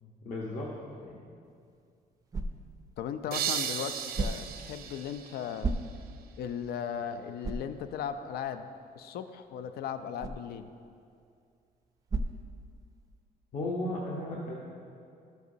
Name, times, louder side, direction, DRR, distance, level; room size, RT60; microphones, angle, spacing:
voice 1, 0.0-0.7 1.0-1.3 13.5-14.5, left 1 dB, 50° left, -4 dB, 0.9 m, -35 dB
sound 1, 1.4-13.2, right 3 dB, 20° right, 0.4 m, -40 dB
voice 2, 3.0-5.7 6.4-8.6 8.9-10.7, left 8 dB, 75° left, 10 dB, 0.4 m, -37 dB
sound 2, 3.3-6.1, right 9 dB, 75° right, 0.6 m, -36 dB
12.0 x 7.9 x 2.7 m, 2.4 s
cardioid pair, 150°, 16 cm